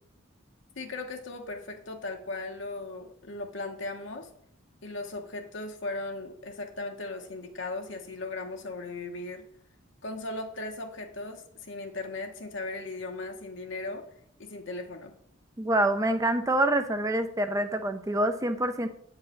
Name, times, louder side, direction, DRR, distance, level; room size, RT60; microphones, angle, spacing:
voice 1, 0.8-4.3 4.8-9.4 10.0-14.0 14.4-15.1, left 2 dB, 65° left, 3 dB, 1.0 m, -37 dB
voice 2, 15.6-18.9, right 1 dB, 15° right, 8 dB, 0.5 m, -26 dB
8.7 x 4.7 x 6.4 m, 0.68 s
head